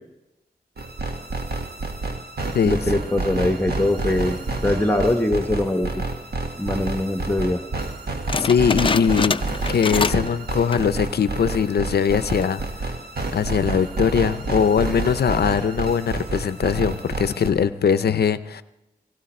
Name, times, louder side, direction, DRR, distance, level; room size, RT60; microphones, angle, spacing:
sound 1, 0.8-17.5, right 3 dB, 80° right, 1.4 m, -29 dB
voice 1, 2.6-6.0 6.6-7.6, left 1 dB, 10° left, 5 dB, 1.0 m, -22 dB
sound 2, 8.3-10.3 10.6-11.0 11.5-11.6 12.2-12.6, left 4 dB, 35° left, 0.4 m, -26 dB
voice 2, 8.4-9.3 9.7-12.8 13.3-18.6, left 7 dB, 85° left, 13 dB, 0.5 m, -21 dB
17.0 x 16.5 x 4.3 m, 0.97 s
wide cardioid pair, 60°, 16 cm